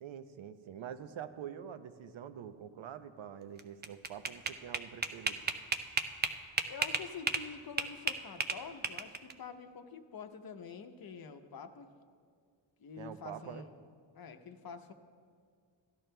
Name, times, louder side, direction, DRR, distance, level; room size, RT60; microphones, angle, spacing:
voice 1, 0.0-5.4 13.0-13.7, right 9 dB, 80° right, 10 dB, 0.7 m, -46 dB
sound 1, 3.6-7.5 7.8-9.3, right 4 dB, 25° right, 0.4 m, -33 dB
voice 2, 6.7-11.9 12.8-13.8 14.1-14.9, left 6 dB, 50° left, 7 dB, 0.7 m, -47 dB
16.5 x 12.0 x 2.2 m, 2.1 s
wide cardioid pair, 115°, 47 cm